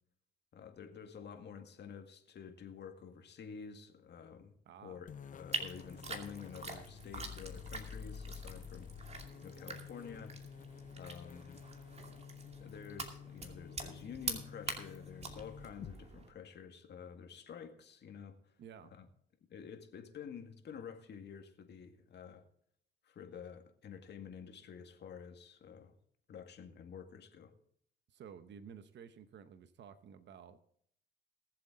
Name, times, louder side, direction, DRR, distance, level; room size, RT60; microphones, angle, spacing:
voice 1, 0.5-4.5 4.8-10.3 11.0-11.6 12.6-18.3 18.9-19.1 19.5-22.4 23.0-25.9 26.3-27.5, left 7 dB, 60° left, 2.0 m, -50 dB
voice 2, 4.7-5.0 18.6-18.9 28.1-30.6, right 7 dB, 65° right, 0.9 m, -53 dB
sound 1, 5.1-16.0, left 7 dB, 40° left, 0.6 m, -50 dB
sound 2, 5.5-16.3, right 3 dB, 30° right, 2.5 m, -45 dB
19.5 x 7.7 x 3.9 m
cardioid pair, 90°, 20 cm